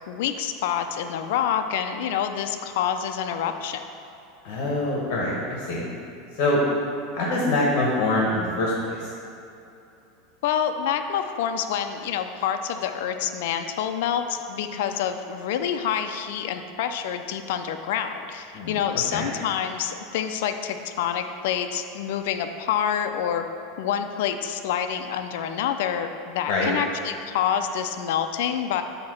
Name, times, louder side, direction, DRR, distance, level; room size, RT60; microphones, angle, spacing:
voice 1, 0.1-3.8 10.4-23.4 23.8-28.8, left 9 dB, 70° left, 7 dB, 0.4 m, -27 dB
voice 2, 4.4-5.9 6.3-6.6 7.1-9.1 18.5-18.8 19.1-19.2 26.5-26.7, left 2 dB, 50° left, -4 dB, 1.2 m, -24 dB
8.5 x 2.9 x 6.1 m, 2.8 s
supercardioid pair, 160°, 0 cm